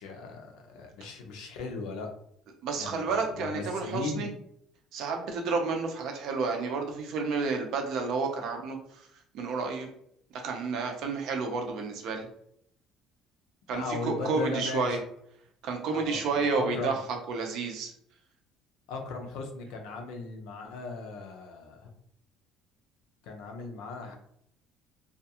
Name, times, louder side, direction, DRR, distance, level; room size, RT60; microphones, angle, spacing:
voice 1, 0.0-2.1 2.8-4.3 13.7-15.0 15.9-17.0 18.9-21.9 23.2-24.1, left 3 dB, 85° left, 3 dB, 0.5 m, -37 dB
voice 2, 2.6-4.3 4.9-8.8 9.3-9.9 10.3-12.3 13.7-15.0 15.6-17.9, right 4 dB, 55° right, 2 dB, 0.6 m, -30 dB
2.4 x 2.3 x 2.8 m, 0.70 s
cardioid pair, 175°, 0 cm